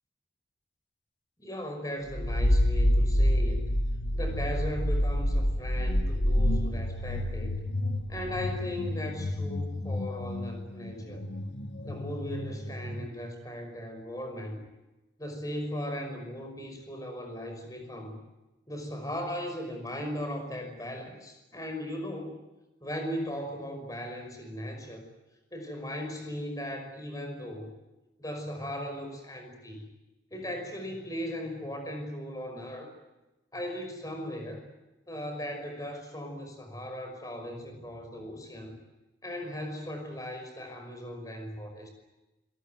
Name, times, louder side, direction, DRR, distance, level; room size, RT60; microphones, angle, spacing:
voice 1, 1.4-3.7 4.1-7.6 8.1-11.2 11.8-14.6 15.2-18.2 18.7-22.4 22.8-25.0 25.5-27.7 28.2-29.9 30.3-32.9 33.5-34.6 35.1-38.8 39.2-41.9, left 1 dB, 20° left, 5 dB, 5.7 m, -38 dB
sound 1, 2.1-13.1, equal, 80° left, 1.8 m, -28 dB
29.0 x 18.0 x 9.4 m, 1.0 s
head